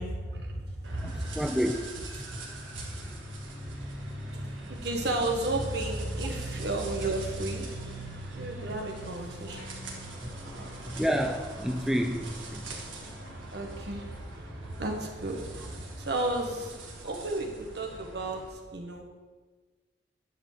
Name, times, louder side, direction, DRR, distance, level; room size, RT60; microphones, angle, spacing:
voice 1, 0.0-1.3 2.3-2.4 2.7-3.0 3.6-3.7 4.3-7.6 8.3-9.7 10.5-10.9 13.5-16.8 17.0-19.0, right 2 dB, 60° right, 1.4 m, -34 dB
sound 1, 0.8-18.5, right 1 dB, 90° right, 2.0 m, -40 dB
voice 2, 1.0-2.0 10.5-12.7, equal, ahead, 0.3 m, -30 dB
Female speech woman speaking / Yell, 6.3-7.9 8.5-9.8 10.1-11.1, left 1 dB, 75° left, 3.3 m, -55 dB
10.5 x 4.3 x 7.2 m
head